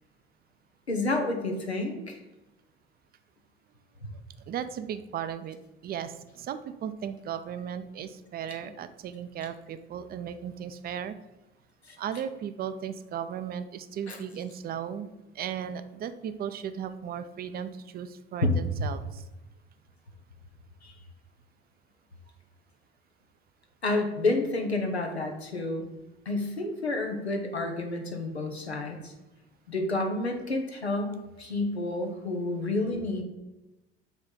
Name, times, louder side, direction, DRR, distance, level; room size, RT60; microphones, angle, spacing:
voice 1, 0.9-2.2 11.9-12.0 14.1-14.2 18.4-18.5 20.8-20.9 23.8-25.9 26.3-29.1 29.7-33.2, left 2 dB, 90° left, 3 dB, 0.8 m, -30 dB
voice 2, 4.5-5.6 5.8-11.1 12.0-19.2, right 8 dB, 30° right, 11 dB, 0.5 m, -36 dB
8.0 x 3.2 x 3.8 m, 1.0 s
figure-of-eight pair, 60°, 31 cm